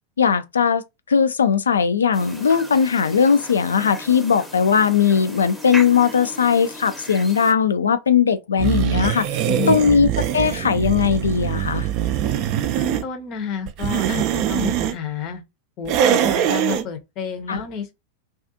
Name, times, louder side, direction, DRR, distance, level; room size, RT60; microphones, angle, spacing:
voice 1, 0.2-0.8 1.1-9.4 9.7-10.1 10.3-11.9 17.5-17.6, left 6 dB, 70° left, 0.3 m, -18 dB
sound 1, 2.1-7.5, equal, ahead, 0.7 m, -36 dB
sound 2, 8.6-13.0 13.7-15.0 15.9-16.9, right 10 dB, 40° right, 0.3 m, -22 dB
voice 2, 9.5-9.8 12.8-15.4 15.8-17.9, left 6 dB, 40° left, 0.6 m, -30 dB
2.4 x 2.3 x 2.6 m
figure-of-eight pair, 90°, 0 cm